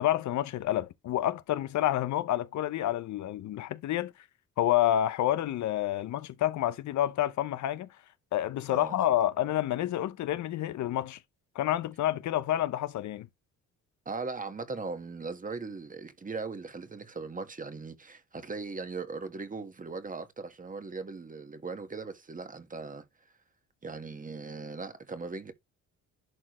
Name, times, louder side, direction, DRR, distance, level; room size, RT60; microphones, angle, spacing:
voice 1, 0.0-4.1 4.6-7.9 8.3-11.2 11.5-13.3, left 12 dB, 70° left, 0.8 m, -29 dB
voice 2, 14.0-23.0 23.8-25.5, right 4 dB, 25° right, 1.5 m, -39 dB
11.0 x 4.4 x 3.1 m
cardioid pair, 90°, 30 cm